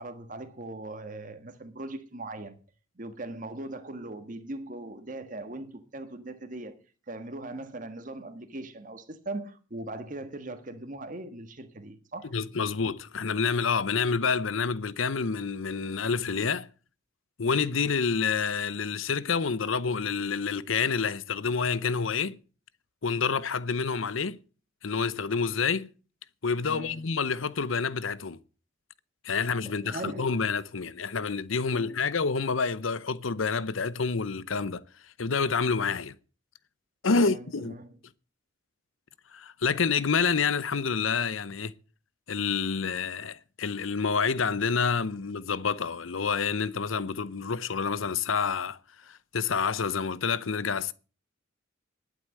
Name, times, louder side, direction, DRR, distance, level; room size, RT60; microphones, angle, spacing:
voice 1, 0.0-2.6 3.0-6.8 7.1-12.3 26.6-27.1 29.6-30.4 31.7-32.0 37.1-38.0, right 2 dB, 40° right, 1.6 m, -40 dB
voice 2, 12.3-16.7 17.4-22.4 23.0-24.4 24.8-25.9 26.4-28.4 29.2-34.8 35.2-36.1 37.0-37.7 39.3-41.7 42.3-48.8 49.1-50.9, left 5 dB, 90° left, 0.8 m, -28 dB
11.5 x 9.0 x 7.6 m
head